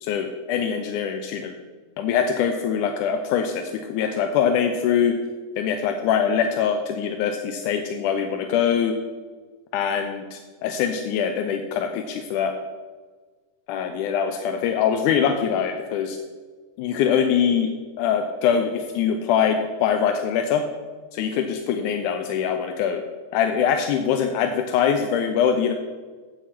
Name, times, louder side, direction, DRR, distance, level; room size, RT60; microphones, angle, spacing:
voice 1, 0.0-1.5 2.0-5.2 5.6-9.0 9.7-12.5 13.7-16.2 16.8-17.7 18.0-20.6 21.1-23.0 23.3-25.7, left 7 dB, 85° left, 5 dB, 2.1 m, -23 dB
8.3 x 7.9 x 5.8 m, 1.4 s
omnidirectional pair, 3.6 m